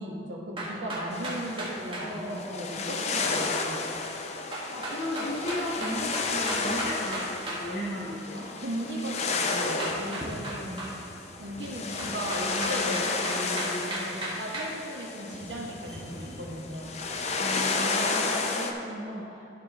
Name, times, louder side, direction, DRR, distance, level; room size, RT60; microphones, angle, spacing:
voice 1, 0.0-3.9 8.6-10.9 11.4-17.0, right 1 dB, 80° right, -2 dB, 1.2 m, -36 dB
sound 1, 0.6-2.1 4.5-7.6 9.8-10.9 12.0-14.7, right 1 dB, 30° right, 1.4 m, -35 dB
sound 2, 1.1-18.7, left 4 dB, 35° left, 0.5 m, -32 dB
voice 2, 2.0-2.7 4.7-8.5 17.4-19.4, left 1 dB, 65° left, -13 dB, 1.8 m, -35 dB
sound 3, 5.2-18.5, equal, ahead, 1.3 m, -48 dB
11.5 x 4.4 x 4.1 m, 2.8 s
head